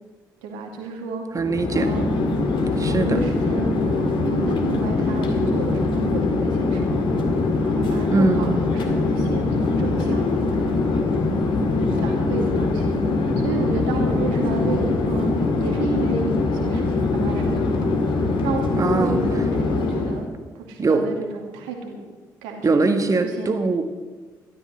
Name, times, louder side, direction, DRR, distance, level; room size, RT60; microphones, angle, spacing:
voice 1, 0.4-1.2 1.7-2.2 2.9-11.0 11.4-17.6 18.1-20.3 20.5-22.0 22.4-23.5, right 4 dB, 70° right, 1 dB, 2.4 m, -32 dB
voice 2, 1.3-1.9 2.8-3.2 8.1-8.5 18.8-19.2 20.8-21.0 22.6-23.8, right 3 dB, 35° right, 7 dB, 1.6 m, -21 dB
Chatter / Fixed-wing aircraft airplane, 1.4-20.3, left 3 dB, 55° left, 1.9 m, -22 dB
13.0 x 12.5 x 6.3 m, 1.3 s
figure-of-eight pair, 40°, 10 cm